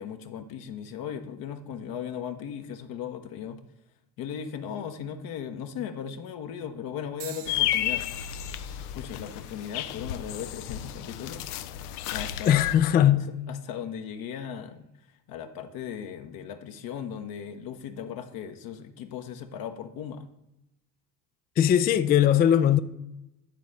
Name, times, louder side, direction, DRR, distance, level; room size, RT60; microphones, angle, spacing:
voice 1, 0.0-3.6 4.2-8.0 8.9-11.9 12.1-12.6 13.0-14.9 15.3-20.3, left 8 dB, 50° left, 0.9 m, -37 dB
sound 1, 7.2-11.3 12.0-12.5 13.4-13.6, right 9 dB, 70° right, 1.1 m, -50 dB
sound 2, 7.5-12.8, left 12 dB, 75° left, 0.6 m, -32 dB
voice 2, 12.5-13.2 21.6-22.8, left 10 dB, 20° left, 0.3 m, -20 dB
9.3 x 4.1 x 6.4 m
hypercardioid pair, 70°, 46 cm